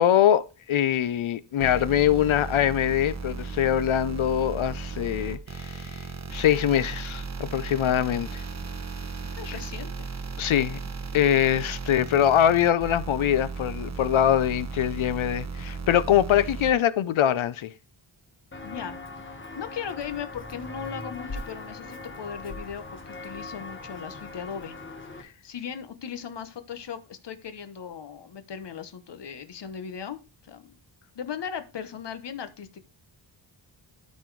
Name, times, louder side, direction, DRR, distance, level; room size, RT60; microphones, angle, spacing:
voice 1, 0.0-6.0 6.3-8.4 10.4-10.8 11.1-17.7, left 10 dB, 85° left, 0.8 m, -23 dB
sound 1, 1.6-16.7, right 4 dB, 35° right, 1.3 m, -35 dB
voice 2, 9.4-10.1 18.6-19.0 19.5-24.8 25.1-30.7 31.1-32.8, left 7 dB, 60° left, 1.1 m, -38 dB
Walk footsteps, 18.5-25.2, left 2 dB, 25° left, 1.6 m, -40 dB
12.5 x 4.4 x 4.7 m
wide cardioid pair, 180°, 47 cm